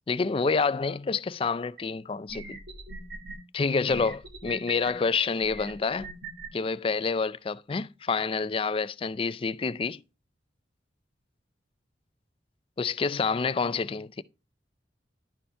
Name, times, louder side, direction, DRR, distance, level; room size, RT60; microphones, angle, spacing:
voice 1, 0.1-2.6 3.5-6.1 6.5-10.0 12.8-14.2, left 4 dB, 30° left, 0.4 m, -28 dB
sound 1, 1.8-1.9 2.3-3.4 3.9-4.9 5.4-6.5, right 3 dB, 60° right, 2.1 m, -41 dB
11.5 x 4.3 x 3.3 m
head